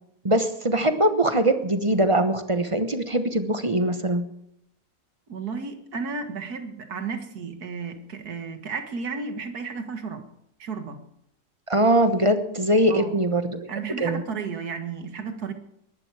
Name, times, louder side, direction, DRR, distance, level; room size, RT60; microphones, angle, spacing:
voice 1, 0.2-4.2 11.7-13.7 14.0-14.2, right 1 dB, 25° right, 9 dB, 1.0 m, -22 dB
voice 2, 5.3-10.3 10.6-11.0 12.9-13.3 13.7-15.5, right 5 dB, 80° right, 7 dB, 2.1 m, -33 dB
21.0 x 11.5 x 4.8 m, 0.78 s
omnidirectional pair, 1.6 m